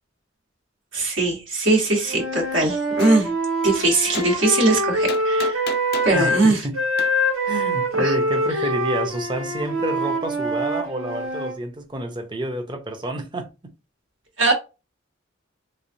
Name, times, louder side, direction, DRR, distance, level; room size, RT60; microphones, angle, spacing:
voice 1, 0.9-3.3 3.6-5.7 6.0-6.6 8.0-8.1 14.4-14.5, right 2 dB, 65° right, 1.1 m, -20 dB
Wind instrument woodwind instrument, 2.0-6.4 6.7-11.6, equal, 85° right, 1.3 m, -24 dB
Gunshot gunfire, 3.0-3.2 4.1-4.3 5.1-6.2 7.0-7.1, left 6 dB, 50° left, 0.4 m, -32 dB
voice 2, 6.1-6.8 7.5-13.7, right 1 dB, 20° right, 0.6 m, -29 dB
3.5 x 3.1 x 2.6 m
head